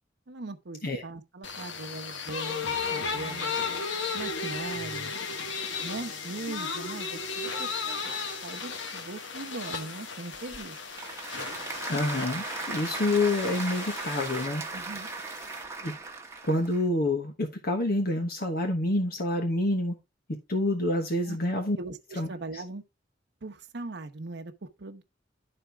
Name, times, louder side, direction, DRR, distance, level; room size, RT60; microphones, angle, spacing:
voice 1, 0.3-3.6 4.1-5.2 5.8-8.0 8.4-10.8 14.7-15.1 21.2-21.4 21.8-22.8 23.4-25.0, right 2 dB, 65° right, 0.9 m, -40 dB
sound 1, 1.4-15.6, left 4 dB, 85° left, 1.3 m, -35 dB
Applause / Crowd, 10.3-16.8, right 3 dB, 15° right, 1.1 m, -37 dB
voice 2, 11.9-14.6 15.8-15.9 16.4-19.9 20.5-21.8 22.2-22.3 22.5-22.6, left 1 dB, 55° left, 1.2 m, -27 dB
11.0 x 4.4 x 3.4 m
head